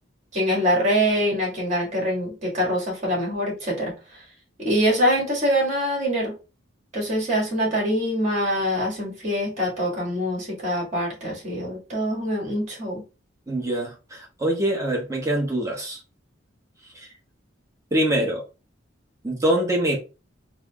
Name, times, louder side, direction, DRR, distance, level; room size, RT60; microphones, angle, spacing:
voice 1, 0.3-3.9 4.6-6.3 6.9-13.0, equal, 35° right, -2 dB, 1.8 m, -24 dB
voice 2, 13.5-16.0 16.9-17.1 17.9-18.4 19.2-20.0, right 1 dB, 15° right, -1 dB, 0.9 m, -24 dB
4.1 x 2.0 x 3.5 m, 0.31 s
head